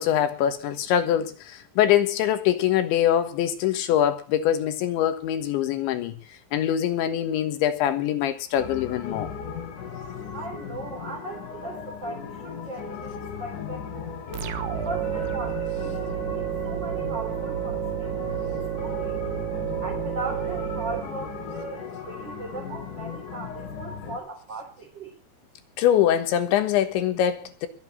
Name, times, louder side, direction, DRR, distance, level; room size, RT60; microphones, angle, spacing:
voice 1, 0.0-6.2 6.5-9.3 25.8-27.7, left 10 dB, 75° left, 3.6 m, -23 dB
sound 1, 8.6-24.2, left 6 dB, 50° left, 3.2 m, -37 dB
voice 2, 10.3-13.1 13.4-14.1 14.7-18.1 18.7-19.2 19.8-25.2, right 2 dB, 25° right, 3.6 m, -38 dB
sound 2, 14.3-21.8, right 12 dB, 65° right, 2.9 m, -31 dB
22.0 x 8.0 x 7.4 m
omnidirectional pair, 5.6 m